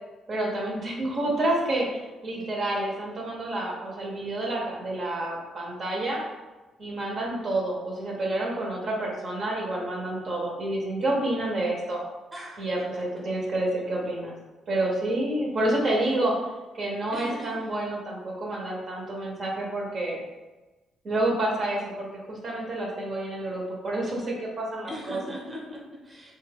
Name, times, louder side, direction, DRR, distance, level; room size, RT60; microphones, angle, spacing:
voice 1, 0.3-6.2 6.8-12.0 12.6-14.3 14.7-16.4 16.7-20.2 21.0-25.2, right 1 dB, 55° right, -2 dB, 0.7 m, -29 dB
voice 2, 12.3-13.0 17.1-17.7 24.9-26.3, equal, 20° right, -2 dB, 0.7 m, -40 dB
2.9 x 2.3 x 3.3 m, 1.2 s
cardioid pair, 90°, 0 cm